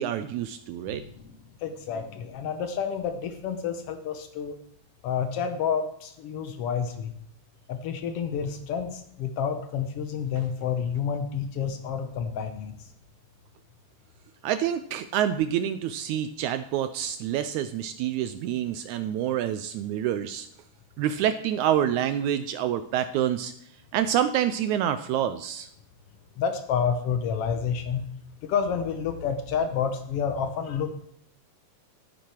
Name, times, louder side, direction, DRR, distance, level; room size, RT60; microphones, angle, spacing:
voice 1, 0.0-1.0 14.4-20.5 21.0-23.5 23.9-25.7, right 10 dB, 85° right, 11 dB, 1.7 m, -27 dB
voice 2, 0.9-4.6 5.0-7.1 7.7-12.8 26.4-28.0 28.4-30.9, left 7 dB, 90° left, 8 dB, 1.3 m, -29 dB
12.0 x 9.3 x 4.4 m, 0.72 s
omnidirectional pair, 3.9 m